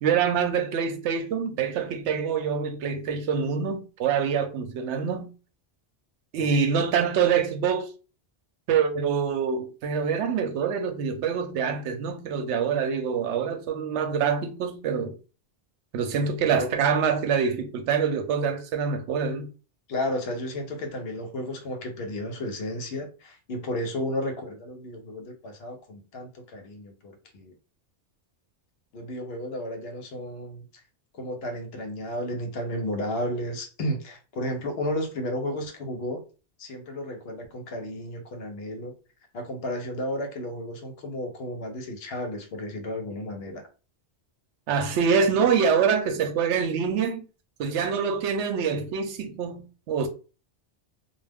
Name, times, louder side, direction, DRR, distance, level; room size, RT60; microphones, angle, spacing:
voice 1, 0.0-5.3 6.3-7.9 8.7-15.1 15.9-19.5 44.7-47.2 47.6-50.1, right 6 dB, 90° right, 0.9 m, -25 dB
voice 2, 19.9-27.5 28.9-30.8 31.1-36.2 36.6-38.9 39.3-43.6, left 1 dB, 65° left, 0.9 m, -33 dB
2.3 x 2.2 x 3.4 m
omnidirectional pair, 1.1 m